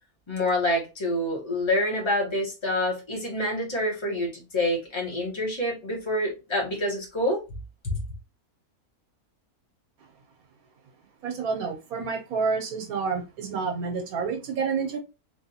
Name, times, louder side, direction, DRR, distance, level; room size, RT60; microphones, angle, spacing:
voice 1, 0.3-7.4 7.8-8.0, left 1 dB, 20° left, 1.3 m, -27 dB
voice 2, 11.2-15.0, right 5 dB, 80° right, 1.1 m, -29 dB
3.3 x 2.6 x 2.7 m
omnidirectional pair, 1.6 m